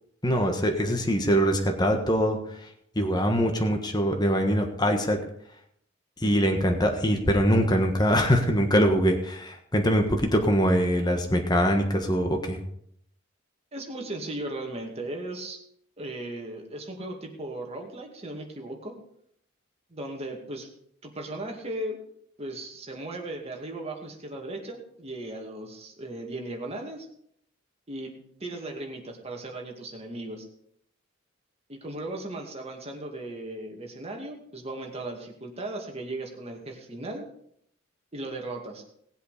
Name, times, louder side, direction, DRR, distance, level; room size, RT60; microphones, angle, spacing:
voice 1, 0.2-2.4 2.9-5.2 6.2-12.6, equal, 20° left, 4 dB, 1.4 m, -23 dB
voice 2, 13.7-15.6 16.0-18.9 19.9-20.7 21.0-22.0 22.4-27.1 27.9-30.5 31.7-37.2 38.1-38.8, right 1 dB, 30° right, 1 dB, 2.3 m, -37 dB
18.5 x 7.9 x 5.1 m, 0.69 s
head